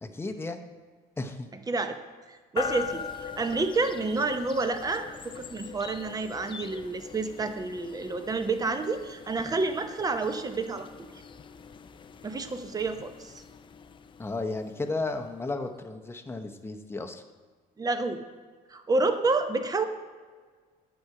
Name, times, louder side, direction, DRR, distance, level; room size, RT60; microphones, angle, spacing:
voice 1, 0.0-0.6 1.2-1.5 14.2-17.2, left 3 dB, 15° left, 5 dB, 0.8 m, -34 dB
voice 2, 2.3-11.1 12.2-13.3 17.8-18.2 18.7-19.8, right 3 dB, 20° right, 8 dB, 0.8 m, -29 dB
sound 1, 2.6-15.6, left 6 dB, 30° left, 0.4 m, -42 dB
9.4 x 6.2 x 4.7 m, 1.5 s
cardioid pair, 110°, 17 cm